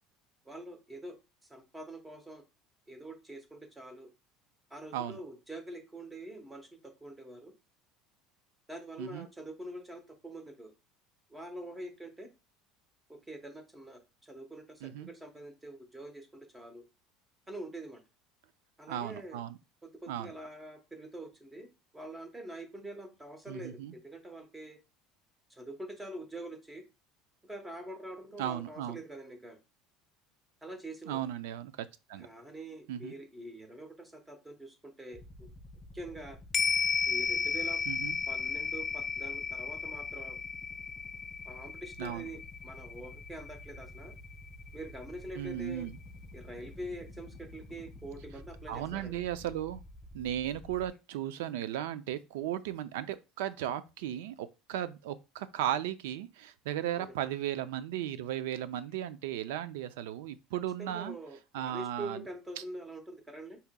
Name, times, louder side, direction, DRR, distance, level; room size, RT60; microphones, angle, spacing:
voice 1, 0.5-1.2 1.5-2.4 2.9-4.1 4.7-6.7 7.0-7.5 8.7-10.7 11.3-12.3 13.3-16.8 17.5-18.0 18.8-19.4 19.8-21.7 21.9-24.8 25.5-26.8 27.4-29.6 30.6-31.2 32.2-35.5 35.9-36.4 37.1-37.8 38.3-40.4 41.5-44.1 44.7-45.9 46.3-49.1 57.0-57.1 60.8-63.6, right 1 dB, 10° right, 0.9 m, -45 dB
voice 2, 18.9-19.6 20.1-20.3 23.5-23.9 28.4-29.0 31.1-31.7 32.1-32.3 32.9-33.1 37.9-38.2 42.0-42.3 45.4-46.0 48.7-49.8 50.1-61.2 61.5-62.2, right 11 dB, 90° right, 0.4 m, -36 dB
sound 1, 35.1-50.9, left 1 dB, 10° left, 1.5 m, -51 dB
sound 2, 36.5-45.1 45.5-45.6, left 6 dB, 30° left, 0.4 m, -34 dB
4.7 x 2.8 x 2.2 m
supercardioid pair, 125°, 0 cm